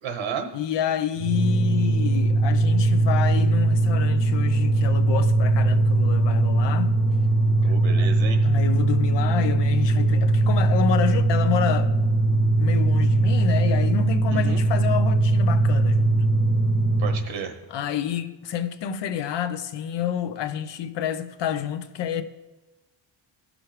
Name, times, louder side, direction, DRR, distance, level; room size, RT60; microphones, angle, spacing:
voice 1, 0.0-0.5 7.6-8.5 14.3-14.6 17.0-17.6, right 6 dB, 90° right, 1.1 m, -32 dB
voice 2, 0.5-6.9 8.0-8.1 8.4-11.9 12.6-16.1 17.7-22.2, left 9 dB, 65° left, 0.8 m, -28 dB
sound 1, 1.2-17.3, right 2 dB, 40° right, 0.8 m, -20 dB
16.5 x 6.2 x 3.2 m
wide cardioid pair, 175°, 46 cm